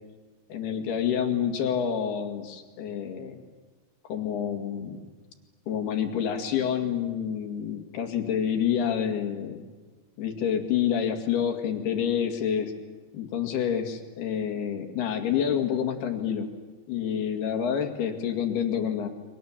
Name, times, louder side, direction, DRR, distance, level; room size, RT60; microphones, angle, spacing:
voice 1, 0.5-3.4 4.0-5.0 5.7-9.6 10.2-12.7 13.1-16.5 16.9-19.1, left 8 dB, 75° left, 5 dB, 4.1 m, -28 dB
29.5 x 24.0 x 7.5 m, 1.4 s
omnidirectional pair, 4.7 m